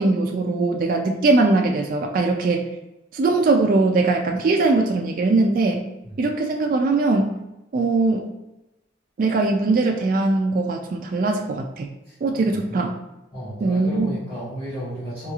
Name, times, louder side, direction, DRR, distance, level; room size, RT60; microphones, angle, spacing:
voice 1, 0.0-2.7 3.1-5.8 6.2-7.3 7.7-8.3 9.2-11.9 12.2-12.9 13.6-14.2, right 3 dB, 45° right, 2 dB, 0.3 m, -21 dB
voice 2, 12.0-12.8 13.3-15.3, equal, 25° left, -15 dB, 1.3 m, -34 dB
3.9 x 3.0 x 2.3 m, 0.94 s
head